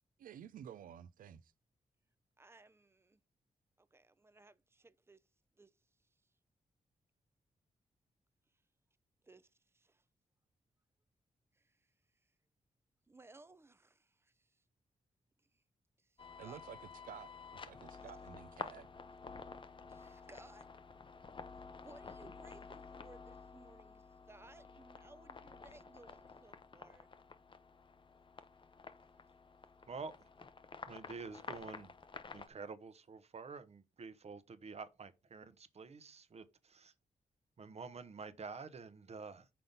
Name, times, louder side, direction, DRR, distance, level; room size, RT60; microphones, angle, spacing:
voice 1, 0.2-1.5 16.4-16.8 17.1-17.3 17.7-18.9, right 9 dB, 80° right, 0.4 m, -51 dB
voice 2, 2.4-3.2 3.8-5.3 5.5-5.7 6.0-6.1 9.2-10.0 11.5-11.9 12.2-12.3 13.1-14.6 15.4-15.6 16.0-16.6 17.9-18.1 19.9-20.7 21.7-27.1, right 2 dB, 20° right, 0.5 m, -61 dB
sound 1, 16.2-32.5, left 5 dB, 35° left, 0.6 m, -51 dB
voice 3, 29.9-30.3 30.9-31.9 32.3-36.9 37.6-39.5, right 4 dB, 50° right, 0.8 m, -49 dB
5.7 x 3.9 x 5.2 m
cardioid pair, 65°, 14 cm